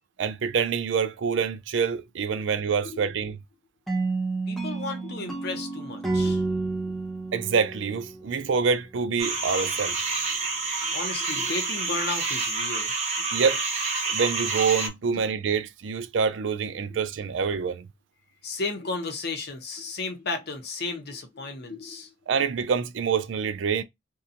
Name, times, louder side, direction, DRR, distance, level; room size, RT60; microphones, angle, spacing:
voice 1, 0.2-3.4 7.3-10.0 13.3-13.6 14.1-17.9 22.3-23.8, right 6 dB, 90° right, 0.4 m, -26 dB
sound 1, 3.9-8.8, right 3 dB, ahead, 0.6 m, -30 dB
voice 2, 4.5-6.6 10.8-12.9 13.2-13.3 15.1-15.3 16.9-17.0 18.4-22.1, left 3 dB, 60° left, 0.7 m, -34 dB
sound 2, 9.2-14.9, right 4 dB, 35° right, 0.8 m, -28 dB
2.7 x 2.2 x 2.5 m
head